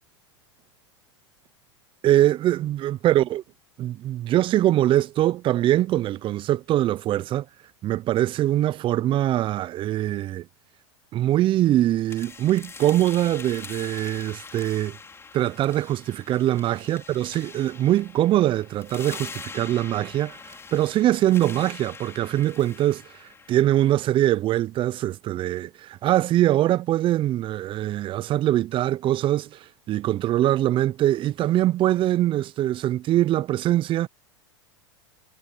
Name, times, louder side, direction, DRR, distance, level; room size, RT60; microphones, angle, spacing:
voice 1, 2.0-3.4 3.8-7.4 7.8-10.4 11.1-15.0 15.3-20.4 20.7-29.6 29.9-34.1, right 13 dB, 35° right, 0.9 m, -23 dB
sound 1, 12.1-24.0, left 5 dB, 15° left, 5.0 m, -43 dB
hypercardioid pair, 100°, 15 cm